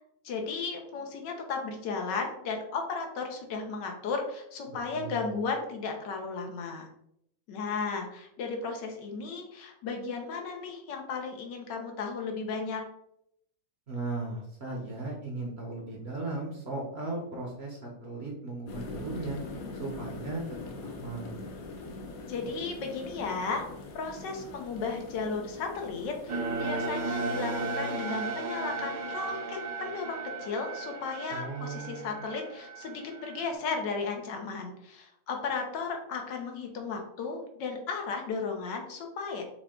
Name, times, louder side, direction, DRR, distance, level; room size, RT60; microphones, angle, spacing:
voice 1, 0.2-6.9 7.5-12.8 22.3-23.6 23.9-39.4, left 4 dB, 85° left, 3 dB, 1.5 m, -35 dB
voice 2, 4.7-5.4 13.9-19.4 19.8-20.4 20.8-21.4 31.3-32.2, right 3 dB, 50° right, -1 dB, 0.8 m, -37 dB
sound 1, 18.7-28.0, left 3 dB, 60° left, 1.1 m, -43 dB
sound 2, 26.3-33.5, right 3 dB, 70° right, 1.3 m, -35 dB
6.2 x 2.3 x 3.6 m, 0.75 s
omnidirectional pair, 1.9 m